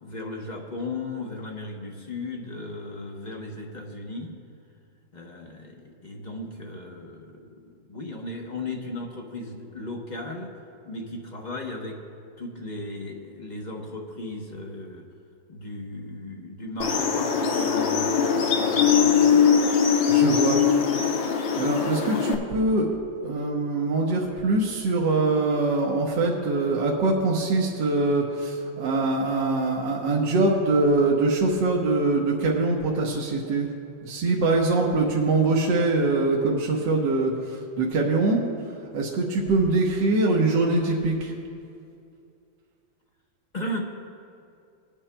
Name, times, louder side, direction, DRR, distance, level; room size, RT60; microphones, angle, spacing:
voice 1, 0.0-4.3 5.1-10.5 10.9-12.0 12.4-15.0 15.5-19.4 43.5-43.8, left 2 dB, 45° left, 1 dB, 0.6 m, -36 dB
sound 1, 16.8-22.4, left 7 dB, 85° left, 1.6 m, -21 dB
voice 2, 20.1-20.6 21.6-23.0 23.2-33.7 34.0-41.3, right 2 dB, 75° right, -2 dB, 1.6 m, -23 dB
21.0 x 8.7 x 2.2 m, 2.4 s
omnidirectional pair, 2.0 m